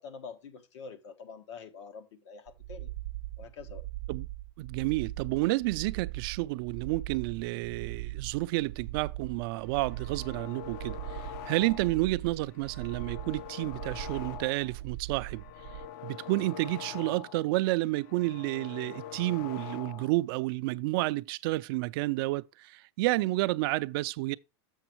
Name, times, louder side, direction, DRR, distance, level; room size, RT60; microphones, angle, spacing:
voice 1, 0.0-2.9 3.4-3.8, left 5 dB, 80° left, 1.4 m, -46 dB
sound 1, 2.5-15.9, right 16 dB, 75° right, 0.7 m, -40 dB
voice 2, 4.6-15.4 16.0-24.4, right 19 dB, 55° right, 0.4 m, -30 dB
sound 2, 9.7-12.1 12.4-14.8 15.1-17.5 17.8-20.2, left 11 dB, 50° left, 0.5 m, -44 dB
7.2 x 6.0 x 4.4 m
supercardioid pair, 150°, 15 cm